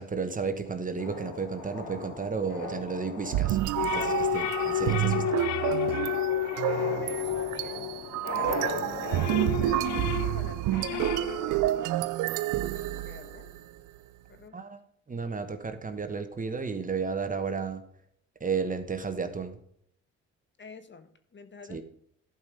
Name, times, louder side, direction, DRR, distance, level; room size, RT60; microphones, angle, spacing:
voice 1, 0.0-5.2 14.5-14.8 15.1-17.8 18.4-19.6 21.7-21.8, right 5 dB, 25° right, 9 dB, 1.2 m, -33 dB
sound 1, 1.0-9.2, left 3 dB, 80° left, 3.1 m, -39 dB
sound 2, 3.3-13.6, right 15 dB, 85° right, 0.5 m, -29 dB
sound 3, 3.8-8.4 8.8-11.6, left 11 dB, 65° left, 0.7 m, -31 dB
voice 2, 4.7-5.8 6.4-7.9 8.2-11.9 13.0-13.5 14.3-14.6 20.6-21.8, left 4 dB, 40° left, 9 dB, 1.4 m, -48 dB
11.5 x 5.4 x 5.1 m, 0.68 s
cardioid pair, 90°, 30 cm